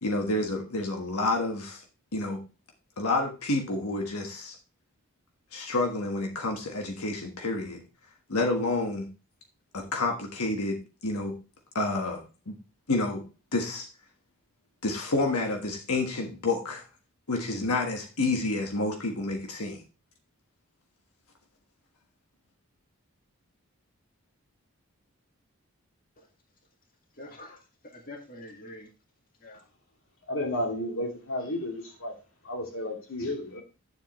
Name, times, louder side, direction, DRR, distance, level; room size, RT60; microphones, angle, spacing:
voice 1, 0.0-1.8 2.1-2.4 3.0-4.6 5.5-7.8 8.3-9.1 9.7-11.3 11.7-12.5 12.9-13.2 13.5-13.9 14.8-16.8 17.3-19.8, left 2 dB, 90° left, 2 dB, 1.4 m, -29 dB
voice 2, 27.1-28.9 29.4-29.6, left 1 dB, 40° left, 2 dB, 2.0 m, -46 dB
voice 3, 30.3-32.1 32.4-33.6, left 1 dB, 65° left, 1 dB, 2.5 m, -32 dB
9.6 x 7.4 x 3.1 m, 0.32 s
head